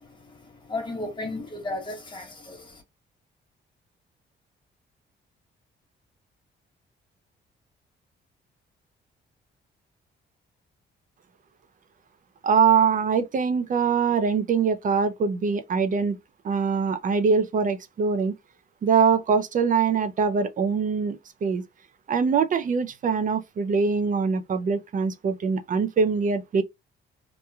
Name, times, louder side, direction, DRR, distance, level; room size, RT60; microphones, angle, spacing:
voice 1, 0.0-2.8, left 2 dB, 25° left, 1.4 m, -35 dB
voice 2, 12.4-16.2 16.4-18.3 18.8-21.6 22.1-26.6, right 6 dB, 40° right, 0.4 m, -23 dB
3.0 x 2.1 x 2.3 m
cardioid pair, 90°, 20 cm